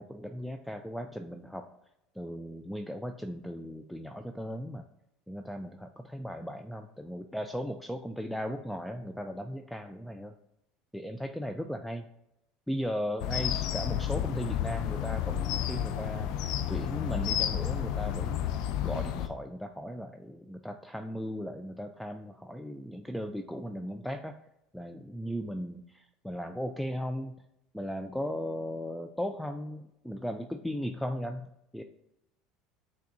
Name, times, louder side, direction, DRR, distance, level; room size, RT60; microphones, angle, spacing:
voice 1, 0.0-1.7 2.2-4.8 5.3-10.3 10.9-12.0 12.7-16.3 16.7-18.5 18.8-24.4 24.7-27.3 27.7-31.8, equal, ahead, 6 dB, 0.3 m, -37 dB
sound 1, 13.2-19.3, left 10 dB, 65° left, 0.5 m, -31 dB
5.9 x 3.4 x 2.6 m, 0.83 s
supercardioid pair, 95°, 0 cm